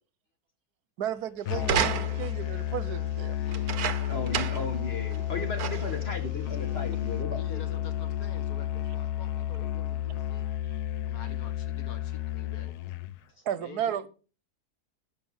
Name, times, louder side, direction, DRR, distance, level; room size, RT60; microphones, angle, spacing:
voice 1, 1.0-3.4 13.4-14.1, right 10 dB, 90° right, 1.4 m, -33 dB
Musical instrument, 1.5-13.2, left 12 dB, 85° left, 1.3 m, -32 dB
sound 1, 1.6-2.4 3.5-4.7 5.1-5.2 5.6-6.0 6.8-6.9, right 9 dB, 75° right, 1.4 m, -31 dB
voice 2, 3.4-4.4 7.3-10.5 11.0-12.8 13.5-14.1, left 5 dB, 70° left, 1.8 m, -49 dB
voice 3, 4.1-7.8, left 2 dB, 40° left, 2.1 m, -36 dB
12.5 x 5.4 x 7.3 m
omnidirectional pair, 1.6 m